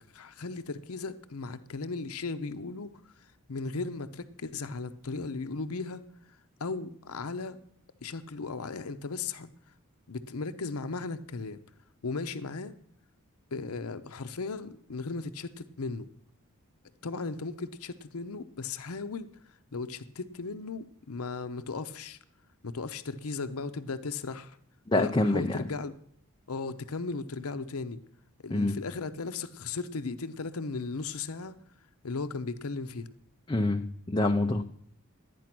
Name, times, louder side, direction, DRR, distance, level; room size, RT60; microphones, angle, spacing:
voice 1, 0.0-7.6 8.0-9.7 10.1-11.6 12.0-12.8 13.5-16.1 17.0-22.2 22.6-24.6 24.9-26.0 26.5-28.0 28.4-31.6 32.0-33.1, left 4 dB, 75° left, 11 dB, 0.7 m, -36 dB
voice 2, 24.9-25.6 28.5-28.8 33.5-34.6, left 2 dB, 20° left, 4 dB, 0.5 m, -26 dB
12.5 x 9.3 x 6.0 m, 0.69 s
head